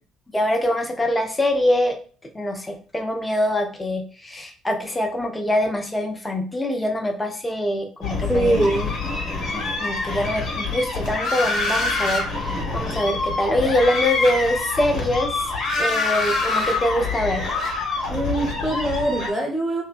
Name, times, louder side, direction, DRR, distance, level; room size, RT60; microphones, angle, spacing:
voice 1, 0.3-2.0 2.3-8.7 9.5-15.5 15.8-17.5, left 1 dB, 15° left, 3 dB, 0.6 m, -24 dB
sound 1, 8.0-19.3, left 3 dB, 55° left, 0.9 m, -25 dB
voice 2, 8.3-8.9 18.1-19.8, right 1 dB, 5° right, -3 dB, 1.1 m, -22 dB
2.6 x 2.1 x 2.4 m, 0.41 s
hypercardioid pair, 55°, 0 cm